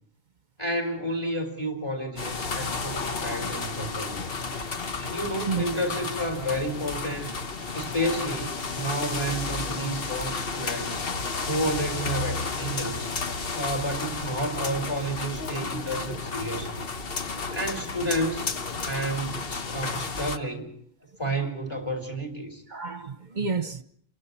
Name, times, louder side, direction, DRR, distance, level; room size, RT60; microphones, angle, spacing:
voice 1, 0.6-4.2 5.1-7.3 7.7-11.0 11.5-13.1 13.5-16.8 17.5-18.5 18.8-20.7 21.2-22.6, right 1 dB, 20° left, 5.0 m, -31 dB
sound 1, 2.2-20.4, left 4 dB, 50° left, 1.3 m, -32 dB
voice 2, 4.6-5.1 5.5-5.6 7.7-7.8 22.7-23.8, right 5 dB, 40° right, 1.1 m, -31 dB
30.0 x 23.5 x 4.4 m
omnidirectional pair, 1.3 m